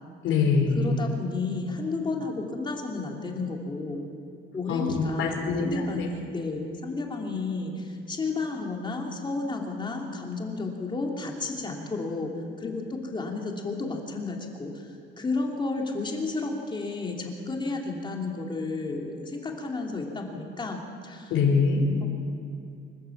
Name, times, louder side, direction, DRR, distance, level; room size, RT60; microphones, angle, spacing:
voice 1, 0.2-0.9 4.7-5.7 5.9-6.1 21.3-21.9, left 5 dB, 80° left, 2 dB, 4.6 m, -23 dB
voice 2, 0.7-4.0 4.5-12.3 12.6-14.9 15.2-20.8 21.0-21.3 22.0-22.1, left 3 dB, 25° left, 0 dB, 3.0 m, -32 dB
25.5 x 15.5 x 7.3 m, 2.5 s
cardioid pair, 150°, 20 cm